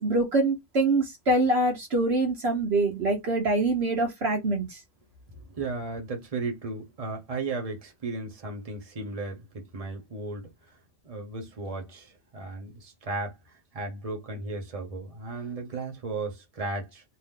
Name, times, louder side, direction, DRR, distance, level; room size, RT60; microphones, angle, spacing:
voice 1, 0.0-4.8, right 2 dB, 60° right, 1.1 m, -25 dB
voice 2, 5.3-10.5 11.0-13.4 13.7-17.0, right 3 dB, 30° right, 1.1 m, -35 dB
2.8 x 2.5 x 3.7 m
omnidirectional pair, 1.3 m